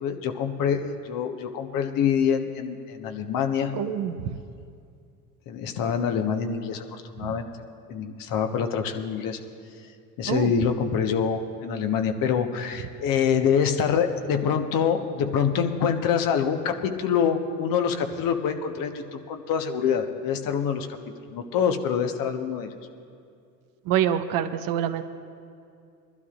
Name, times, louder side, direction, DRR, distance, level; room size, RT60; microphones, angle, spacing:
voice 1, 0.0-3.7 5.5-6.8 7.2-7.4 7.9-9.4 10.2-20.9 21.3-22.7, left 7 dB, 45° left, 6 dB, 1.3 m, -25 dB
voice 2, 3.7-4.3 10.3-10.5 23.9-25.0, right 10 dB, 45° right, 9 dB, 0.9 m, -26 dB
24.0 x 12.0 x 2.5 m, 2.4 s
figure-of-eight pair, 60°, 47 cm